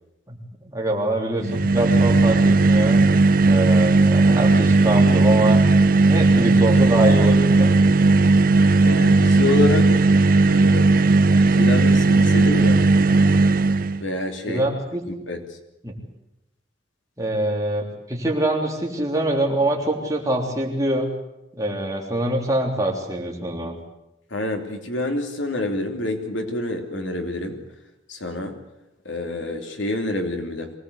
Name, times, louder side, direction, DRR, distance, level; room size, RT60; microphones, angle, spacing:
voice 1, 0.3-3.0 3.5-5.6 6.1-7.8 14.5-15.0 15.8-15.9 17.2-21.1 21.5-23.7, right 1 dB, 15° right, 0 dB, 3.4 m, -24 dB
sound 1, 1.4-14.0, right 3 dB, 45° right, 0.8 m, -16 dB
voice 2, 8.8-10.0 10.5-10.9 11.3-12.9 14.0-14.7 15.1-15.4 24.3-27.6 28.1-28.6 29.0-30.7, left 2 dB, 80° left, 4 dB, 3.0 m, -27 dB
23.5 x 18.0 x 8.2 m, 0.89 s
head